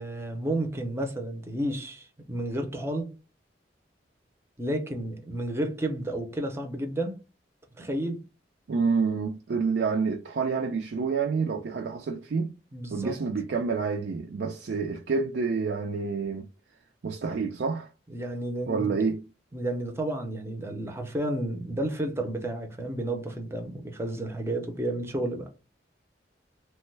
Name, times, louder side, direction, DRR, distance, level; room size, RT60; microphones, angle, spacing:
voice 1, 0.0-3.1 4.6-7.2 7.8-8.2 12.7-13.2 18.1-19.0 19.5-25.5, right 1 dB, 15° right, 0.5 m, -31 dB
voice 2, 8.7-12.5 12.9-16.5 17.0-17.9 18.7-19.2, right 5 dB, 65° right, 0.4 m, -28 dB
3.0 x 2.2 x 3.2 m
head